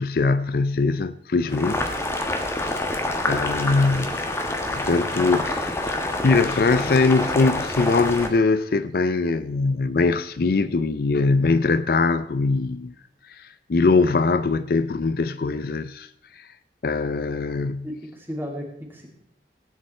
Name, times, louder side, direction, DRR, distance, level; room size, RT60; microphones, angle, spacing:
voice 1, 0.0-1.9 2.6-2.8 3.3-4.4 4.7-5.9 6.2-12.9 13.3-16.1 16.3-16.5 16.8-17.9, left 3 dB, 55° left, 0.5 m, -22 dB
Boiling, 1.5-8.3, left 1 dB, 15° left, 1.3 m, -27 dB
voice 2, 17.8-19.1, equal, 10° right, 2.8 m, -34 dB
17.5 x 9.5 x 4.4 m
head